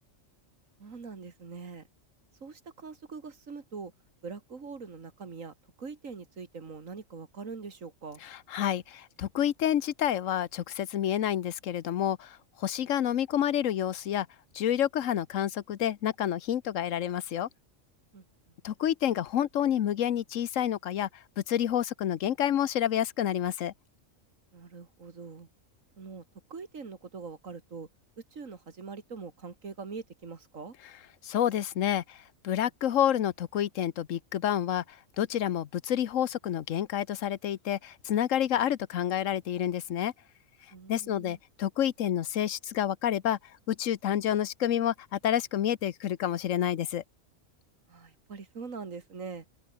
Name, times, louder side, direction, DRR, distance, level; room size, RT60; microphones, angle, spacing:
voice 1, 0.8-1.9 2.4-3.9 4.2-8.2 18.1-18.2 24.5-25.5 26.0-26.2 26.5-27.9 28.3-30.7 40.7-41.4 47.9-49.4, right 5 dB, 85° right, 2.6 m, -43 dB
voice 2, 8.2-14.3 14.5-17.5 18.6-21.1 21.5-23.7 31.2-32.2 32.4-34.8 35.2-40.1 40.9-43.4 43.7-47.0, left 10 dB, 80° left, 1.2 m, -29 dB
open air
omnidirectional pair, 1.3 m